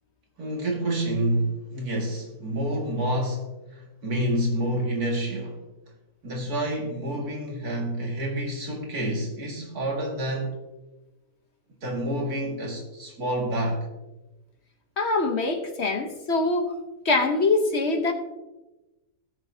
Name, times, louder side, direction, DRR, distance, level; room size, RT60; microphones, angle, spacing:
voice 1, 0.4-5.6 6.2-10.6 11.8-13.9, right 1 dB, 75° right, 2.6 m, -28 dB
voice 2, 15.0-16.7 17.0-18.1, left 3 dB, 50° left, 1.1 m, -24 dB
18.0 x 6.7 x 2.7 m
omnidirectional pair, 1.6 m